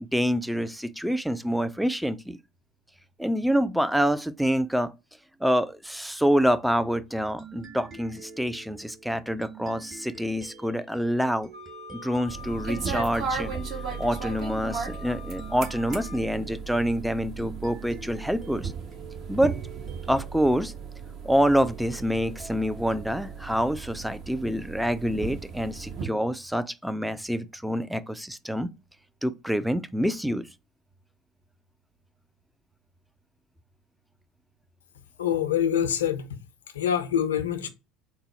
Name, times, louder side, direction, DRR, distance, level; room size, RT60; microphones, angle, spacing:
voice 1, 0.1-2.4 3.2-4.9 5.4-11.5 11.9-13.5 14.0-18.7 19.3-19.5 20.1-20.7 21.2-28.7 29.2-30.5, equal, ahead, 0.3 m, -26 dB
sound 1, 7.4-24.5, right 4 dB, 30° right, 1.4 m, -48 dB
Wind instrument woodwind instrument, 11.5-16.2, left 8 dB, 85° right, 1.4 m, -45 dB
sound 2, 12.3-26.1, right 5 dB, 50° right, 0.8 m, -36 dB
voice 2, 35.2-36.4 36.7-37.7, left 9 dB, 80° left, 0.5 m, -25 dB
3.9 x 2.0 x 4.0 m
figure-of-eight pair, 65°, 0 cm